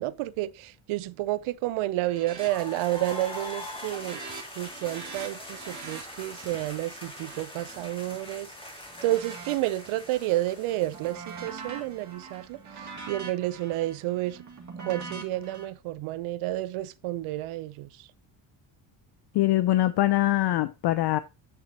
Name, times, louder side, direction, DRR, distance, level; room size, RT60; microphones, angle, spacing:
voice 1, 0.0-4.2 4.6-8.5 9.0-14.4 14.8-17.9, right 16 dB, 85° right, 0.7 m, -30 dB
sound 1, 2.0-2.5 2.8-3.2 3.5-8.4 8.9-10.2 10.6-15.6, right 5 dB, 35° right, 2.1 m, -44 dB
sound 2, 2.4-12.1, left 1 dB, 10° left, 2.5 m, -42 dB
voice 2, 19.3-21.2, left 15 dB, 55° left, 0.5 m, -23 dB
9.1 x 6.3 x 2.9 m
cardioid pair, 125°, 48 cm